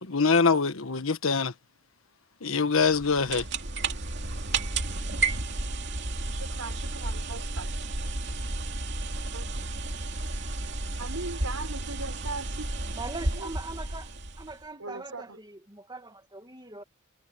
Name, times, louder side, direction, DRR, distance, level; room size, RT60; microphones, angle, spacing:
voice 1, 0.0-1.5 2.4-3.5, left 4 dB, 70° left, 1.3 m, -24 dB
sound 1, 2.8-14.6, right 2 dB, 55° right, 2.6 m, -32 dB
voice 2, 6.3-7.7 9.3-9.7 11.0-13.5 14.8-15.4, right 3 dB, 90° right, 4.6 m, -40 dB
voice 3, 12.9-14.1 14.4-16.8, right 3 dB, 20° right, 2.2 m, -41 dB
head